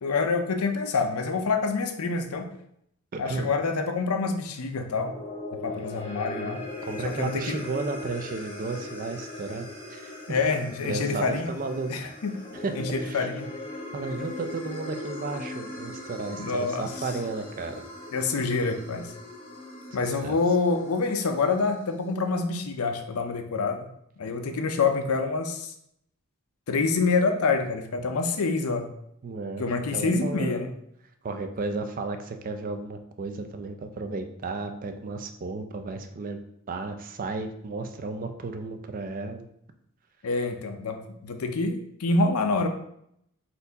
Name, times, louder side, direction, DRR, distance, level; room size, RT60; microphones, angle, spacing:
voice 1, 0.0-2.5 3.2-5.1 5.5-6.6 7.0-7.6 10.3-11.5 11.9-12.3 12.7-13.5 16.3-16.9 18.1-19.1 19.9-23.8 24.2-25.7 26.7-28.9 29.6-30.7 40.2-42.7, left 4 dB, 80° left, 6 dB, 0.5 m, -26 dB
voice 2, 3.1-3.5 6.8-10.4 10.8-12.1 12.5-13.3 13.9-17.8 20.2-20.4 29.2-29.7 29.9-30.7 31.2-36.4 36.7-39.5, right 3 dB, 40° right, 6 dB, 0.4 m, -33 dB
sound 1, 4.9-21.3, left 1 dB, 20° left, 0.8 m, -39 dB
4.3 x 2.6 x 3.9 m, 0.73 s
head